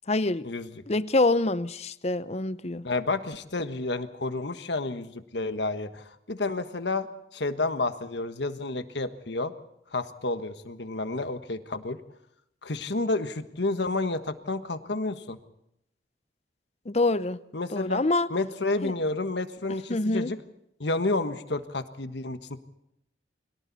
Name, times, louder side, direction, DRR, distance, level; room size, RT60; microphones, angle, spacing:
voice 1, 0.1-0.5 0.9-2.9 16.9-17.4 17.7-18.3 18.8-18.9 19.9-20.3, left 2 dB, 35° left, 0.7 m, -25 dB
voice 2, 2.8-7.1 7.3-9.5 9.9-12.0 12.6-15.4 17.5-18.0 18.3-20.4 20.8-22.6, left 2 dB, 75° left, 1.4 m, -30 dB
29.5 x 23.0 x 4.2 m
head